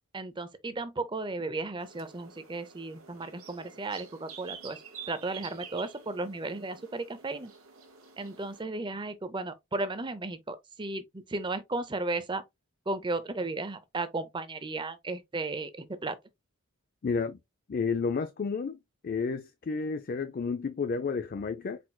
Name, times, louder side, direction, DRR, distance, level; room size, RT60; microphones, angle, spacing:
voice 1, 0.1-4.8 5.1-7.5 8.2-12.4 12.9-16.2, right 2 dB, 20° right, 0.5 m, -35 dB
sound 1, 1.8-8.6, right 7 dB, 75° right, 1.1 m, -49 dB
voice 2, 17.0-17.4 17.7-18.8 19.0-21.8, left 5 dB, 40° left, 0.4 m, -31 dB
4.4 x 4.3 x 2.2 m
head